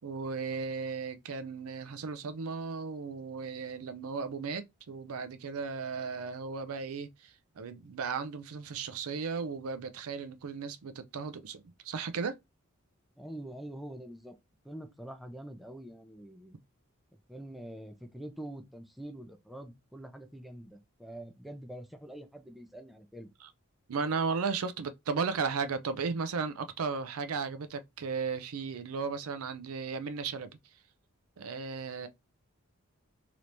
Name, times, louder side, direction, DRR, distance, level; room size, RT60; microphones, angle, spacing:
voice 1, 0.0-12.4 23.4-23.5 23.9-30.5 31.4-32.1, right 5 dB, 90° right, 0.5 m, -35 dB
voice 2, 13.2-14.3 14.6-16.6 17.3-23.3, right 1 dB, ahead, 0.5 m, -45 dB
3.3 x 2.9 x 2.6 m
head